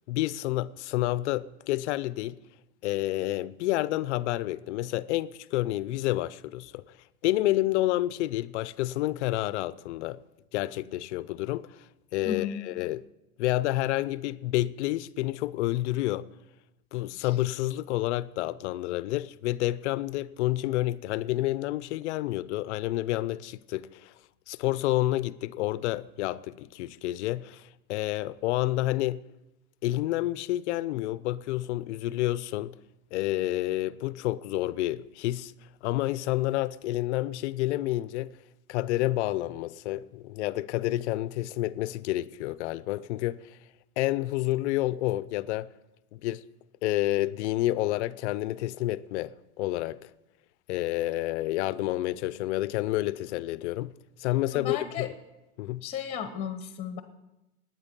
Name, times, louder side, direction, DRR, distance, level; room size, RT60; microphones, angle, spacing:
voice 1, 0.1-2.4 2.8-7.0 7.2-10.2 10.5-13.0 13.4-16.3 16.9-24.1 24.5-29.2 29.8-32.8 33.1-35.5 35.8-38.3 38.7-43.6 44.0-45.7 46.1-46.4 46.8-50.1 50.7-53.9 54.2-55.1 55.6-55.9, left 16 dB, 55° left, 0.6 m, -29 dB
voice 2, 54.5-55.1 55.8-57.0, left 8 dB, 15° left, 1.0 m, -34 dB
19.0 x 9.1 x 5.3 m
hypercardioid pair, 130°, 43 cm